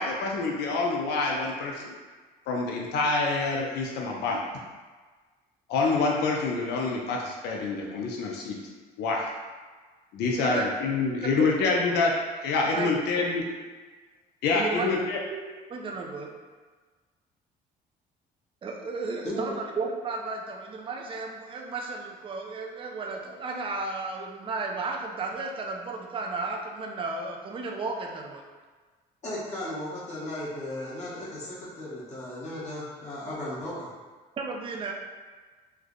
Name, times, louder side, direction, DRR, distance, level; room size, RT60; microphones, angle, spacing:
voice 1, 0.0-1.9 2.5-4.4 5.7-8.6 9.0-9.3 10.1-12.1 12.4-13.4 14.4-15.2, left 3 dB, 75° left, -1 dB, 0.5 m, -26 dB
voice 2, 10.3-10.7 11.2-11.3 12.7-12.9 14.5-14.9 15.7-16.3 18.6-28.4 34.4-34.9, right 4 dB, 30° right, 0 dB, 0.5 m, -33 dB
voice 3, 29.2-33.9, left 1 dB, 40° left, -8 dB, 1.0 m, -35 dB
3.3 x 2.1 x 3.7 m, 1.4 s
cardioid pair, 110°, 17 cm